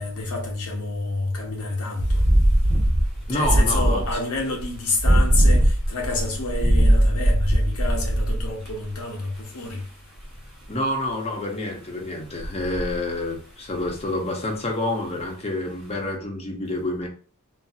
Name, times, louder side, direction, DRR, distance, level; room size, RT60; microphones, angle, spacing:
voice 1, 0.0-2.2 3.3-9.8, left 3 dB, 75° left, 0.7 m, -28 dB
sound 1, 2.0-8.8 12.4-13.0, right 1 dB, 5° right, 0.9 m, -19 dB
voice 2, 3.3-4.0 10.7-17.1, left 1 dB, 30° left, 0.7 m, -28 dB
4.0 x 2.0 x 2.4 m
head